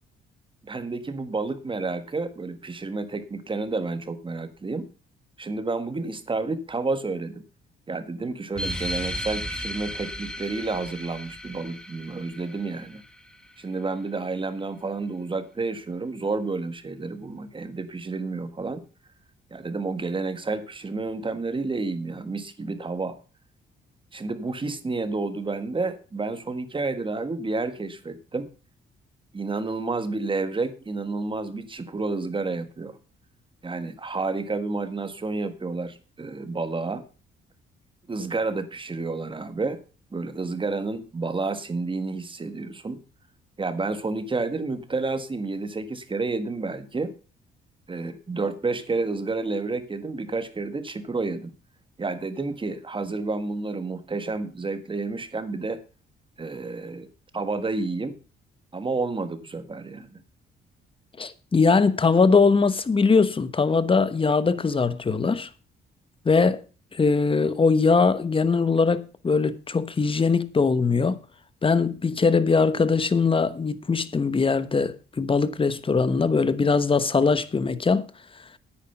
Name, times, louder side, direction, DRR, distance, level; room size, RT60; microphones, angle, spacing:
voice 1, 0.6-4.9 5.4-7.4 7.9-13.0 13.6-18.8 19.5-23.2 24.1-28.5 29.3-33.0 33.6-37.0 38.1-39.8 40.1-43.0 43.6-47.1 47.9-51.5 52.0-55.8 56.4-57.1 57.3-58.2 58.7-60.2, right 3 dB, 25° right, 1.6 m, -30 dB
sound 1, 8.5-13.6, equal, 5° left, 1.6 m, -35 dB
voice 2, 61.2-65.5 66.2-66.6 66.9-71.2 71.6-78.0, left 4 dB, 25° left, 1.1 m, -21 dB
9.6 x 9.1 x 5.8 m
cardioid pair, 90°, 20 cm